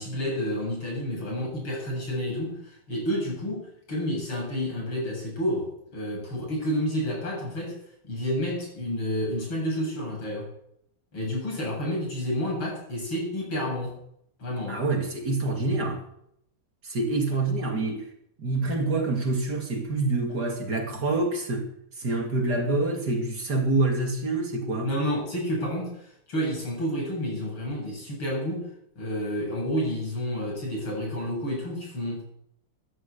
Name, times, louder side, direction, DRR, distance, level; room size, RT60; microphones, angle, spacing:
voice 1, 0.0-7.8 8.0-10.5 11.1-14.0 14.4-14.8 24.8-28.7 29.0-32.2, equal, 70° left, 9.0 m, -30 dB
voice 2, 14.7-16.0 16.8-18.1 18.4-21.7 22.0-24.9, right 2 dB, 50° right, 3.1 m, -26 dB
14.0 x 11.5 x 8.4 m
omnidirectional pair, 2.3 m